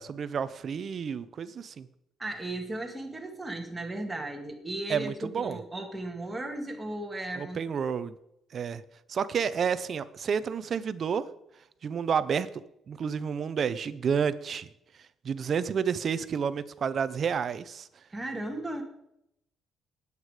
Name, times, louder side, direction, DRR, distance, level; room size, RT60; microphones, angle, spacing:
voice 1, 0.0-1.9 4.9-5.6 7.4-8.1 8.5-8.8 9.1-11.3 11.8-14.7 15.2-17.9, right 7 dB, 35° right, 15 dB, 0.6 m, -30 dB
voice 2, 2.2-7.6 18.1-18.8, right 1 dB, 10° right, 3 dB, 1.8 m, -36 dB
19.0 x 8.3 x 4.9 m, 0.80 s
cardioid pair, 175°, 0 cm